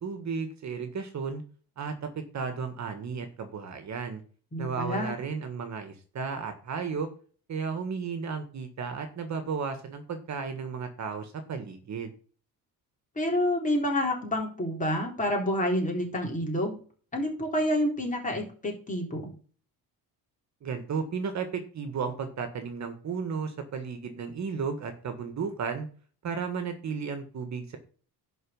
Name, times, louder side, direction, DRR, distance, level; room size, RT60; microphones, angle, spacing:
voice 1, 0.0-1.4 1.8-2.1 2.3-4.2 4.6-7.1 7.5-12.1 20.6-25.9 26.2-27.8, right 5 dB, 45° right, 7 dB, 1.8 m, -34 dB
voice 2, 4.5-5.2 13.2-16.8 17.1-19.3, left 1 dB, 20° left, 0 dB, 3.7 m, -28 dB
11.0 x 4.7 x 7.2 m, 0.41 s
cardioid pair, 155°, 38 cm